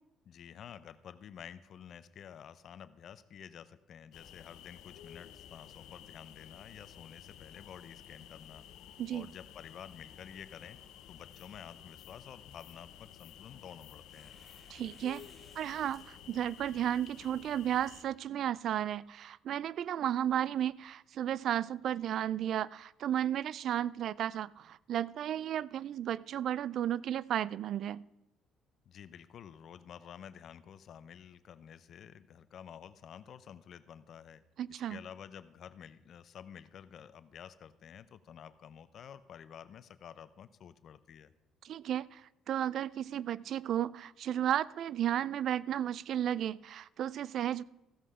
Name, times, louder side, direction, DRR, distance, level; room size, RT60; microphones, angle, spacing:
voice 1, 0.2-8.6 9.1-10.8 11.1-14.4 28.9-34.4 34.7-41.3, left 8 dB, 55° left, 0.6 m, -51 dB
sound 1, 4.1-18.0, left 9 dB, 80° left, 0.9 m, -53 dB
Tearing, 12.3-18.9, equal, 10° right, 3.6 m, -66 dB
voice 2, 14.7-15.2 15.6-28.0 34.6-35.0 41.6-47.6, right 10 dB, 65° right, 0.3 m, -33 dB
15.0 x 7.7 x 4.9 m
cardioid pair, 100°, 0 cm